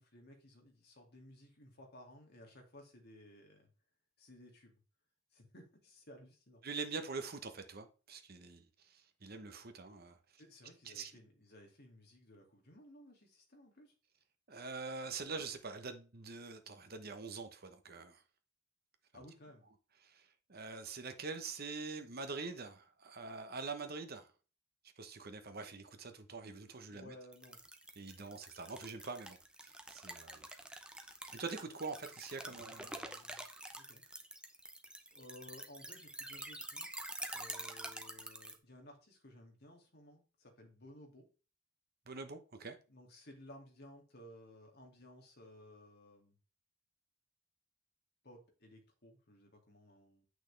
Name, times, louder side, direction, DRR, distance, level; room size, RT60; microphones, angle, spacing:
voice 1, 0.0-3.7 4.2-4.7 5.3-6.6 10.4-13.9 19.1-19.7 26.9-27.6 32.5-33.4 33.8-34.0 35.1-36.9 37.3-41.3 42.9-46.4 48.2-50.2, left 1 dB, 50° left, 2.4 m, -57 dB
voice 2, 6.6-10.2 10.8-11.1 14.5-18.2 20.0-24.3 25.0-27.1 28.0-30.5 31.3-32.9 42.1-42.8, right 4 dB, 50° right, 1.1 m, -45 dB
sound 1, 27.3-38.6, right 1 dB, 5° right, 0.8 m, -47 dB
8.9 x 6.2 x 3.4 m
head